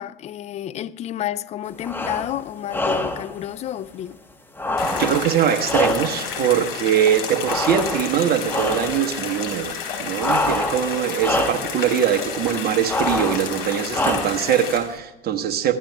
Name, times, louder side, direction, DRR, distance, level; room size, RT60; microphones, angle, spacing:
voice 1, 0.0-4.2, left 12 dB, 25° left, 0.4 m, -30 dB
sound 1, 1.8-2.3 2.7-3.3 4.6-6.3 7.4-8.2 8.5-9.0 10.2-10.9 11.2-11.7 12.9-13.5 13.9-14.5, left 2 dB, 5° left, 1.2 m, -25 dB
sound 2, 4.8-14.8, left 6 dB, 80° left, 3.8 m, -31 dB
voice 2, 4.8-15.8, right 9 dB, 30° right, 1.2 m, -22 dB
23.5 x 14.5 x 2.3 m
hypercardioid pair, 90°, 29 cm